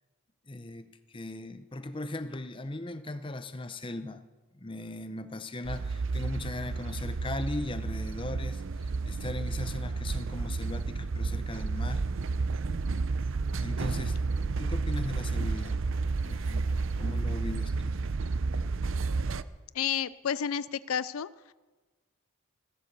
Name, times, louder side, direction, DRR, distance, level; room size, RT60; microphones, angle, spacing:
voice 1, 0.5-4.3 4.5-12.0 13.6-15.8 16.2-18.0, left 2 dB, 25° left, 11 dB, 0.7 m, -38 dB
sound 1, 5.6-19.4, right 3 dB, 65° right, 0.6 m, -31 dB
voice 2, 19.7-21.3, left 8 dB, 85° left, 18 dB, 0.4 m, -30 dB
15.5 x 12.5 x 6.9 m, 1.3 s
head